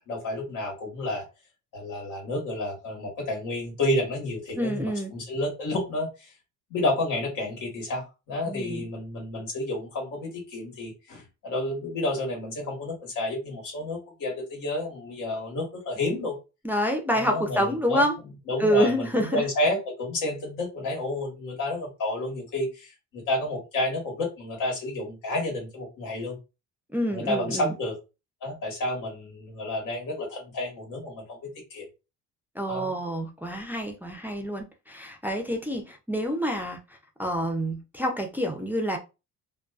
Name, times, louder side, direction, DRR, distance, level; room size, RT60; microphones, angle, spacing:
voice 1, 0.1-1.2 1.7-6.3 6.7-16.4 17.1-18.0 18.5-26.4 27.1-28.0 28.4-31.9 32.7-33.0, left 1 dB, 90° left, 1.4 m, -30 dB
voice 2, 4.6-5.1 8.5-8.9 16.6-18.2 18.6-19.5 26.9-27.7 32.6-36.8 37.2-39.0, equal, 5° right, 0.3 m, -27 dB
2.5 x 2.3 x 2.3 m
cardioid pair, 115°, 32 cm